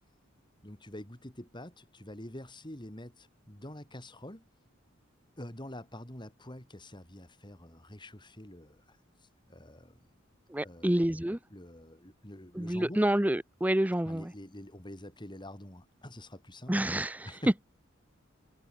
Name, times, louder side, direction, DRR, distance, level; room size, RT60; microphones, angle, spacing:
voice 1, 0.6-4.5 5.4-9.0 9.5-10.0 10.6-11.1 11.5-13.0 14.1-16.8 17.3-17.5, left 1 dB, 25° left, 3.6 m, -46 dB
voice 2, 10.5-11.4 12.5-14.3 16.7-17.3, right 1 dB, 10° right, 0.6 m, -28 dB
head